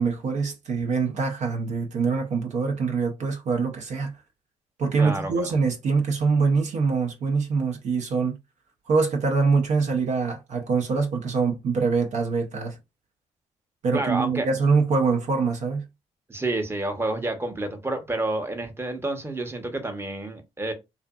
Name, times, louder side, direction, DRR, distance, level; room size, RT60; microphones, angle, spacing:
voice 1, 0.0-4.2 4.8-8.4 8.9-12.8 13.8-15.8, right 4 dB, 55° right, 0.6 m, -24 dB
voice 2, 5.0-5.5 13.9-14.5 16.3-20.7, right 2 dB, 15° right, 0.8 m, -29 dB
2.5 x 2.5 x 2.3 m
supercardioid pair, 60°, 14 cm